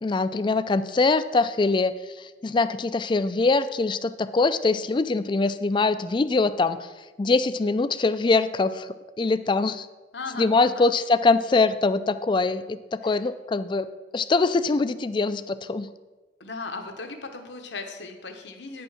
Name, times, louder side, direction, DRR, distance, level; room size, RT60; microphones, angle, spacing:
voice 1, 0.0-6.9 7.2-8.9 9.2-9.9 10.4-13.9 14.1-15.9, left 3 dB, 25° left, 13 dB, 0.3 m, -23 dB
voice 2, 10.1-10.9 13.0-13.3 16.4-18.8, left 3 dB, 80° left, 5 dB, 1.1 m, -37 dB
9.5 x 5.4 x 5.7 m, 1.2 s
head